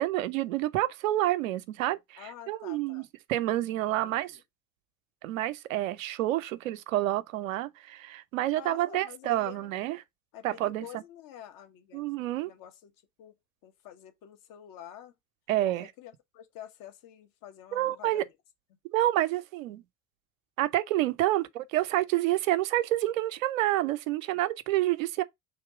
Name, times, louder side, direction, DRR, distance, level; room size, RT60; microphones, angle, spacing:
voice 1, 0.0-2.2 2.5-3.0 3.3-4.3 5.2-10.0 10.4-10.9 11.9-12.5 15.5-15.9 17.7-18.3 18.9-19.8 20.6-25.2, right 15 dB, 65° right, 0.6 m, -28 dB
voice 2, 2.2-3.1 4.0-4.4 8.5-9.7 10.3-12.1 12.4-12.9 13.2-13.4 13.6-15.1 16.0-18.2, left 11 dB, 50° left, 1.1 m, -48 dB
3.7 x 2.9 x 4.6 m
figure-of-eight pair, 65°, 42 cm